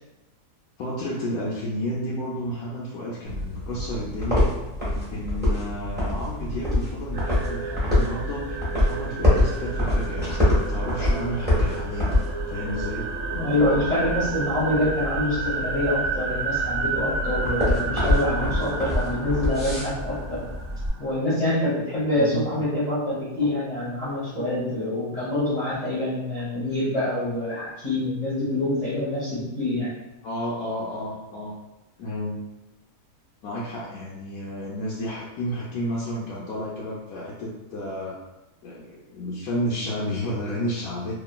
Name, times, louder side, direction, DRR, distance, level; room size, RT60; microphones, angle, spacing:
voice 1, 0.8-4.5 4.8-12.1 12.5-13.1 22.2-22.7 30.2-31.5 32.0-32.4 33.4-38.2 38.6-41.1, equal, 75° left, -6 dB, 1.0 m, -31 dB
sound 1, 3.2-20.9, left 1 dB, 10° right, 0.9 m, -26 dB
sound 2, 7.1-21.1, right 4 dB, 75° right, 1.1 m, -32 dB
voice 2, 13.3-20.4 21.0-29.9, left 1 dB, 30° left, -11 dB, 0.9 m, -26 dB
2.9 x 2.5 x 2.2 m, 0.99 s
omnidirectional pair, 1.6 m